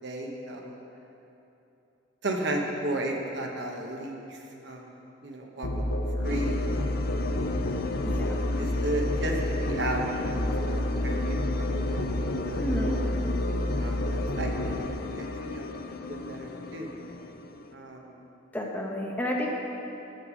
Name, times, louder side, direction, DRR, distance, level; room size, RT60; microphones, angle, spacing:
voice 1, 0.0-0.7 2.2-4.9 5.2-5.7 6.2-7.3 8.6-13.1 13.8-15.8 16.1-17.0 17.7-18.2, right 1 dB, 55° right, 1 dB, 1.0 m, -35 dB
Musical instrument, 5.6-14.9, left 1 dB, 85° left, 0.9 m, -29 dB
sound 1, 6.2-17.7, left 3 dB, 45° left, 0.4 m, -36 dB
voice 2, 8.0-8.4 12.6-13.0 18.5-19.5, left 1 dB, 10° left, -2 dB, 0.8 m, -31 dB
9.1 x 6.5 x 6.2 m, 2.9 s
head